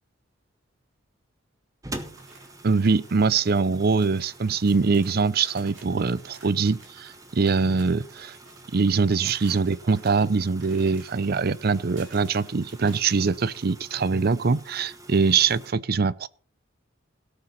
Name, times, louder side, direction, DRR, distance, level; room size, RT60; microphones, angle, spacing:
sound 1, 1.8-15.7, right 1 dB, 15° right, 1.5 m, -46 dB
sound 2, 2.2-3.7 4.0-13.0, right 3 dB, 75° right, 3.9 m, -52 dB
voice 1, 2.6-8.0 8.7-16.3, right 4 dB, 50° right, 0.6 m, -23 dB
17.5 x 6.7 x 5.8 m
head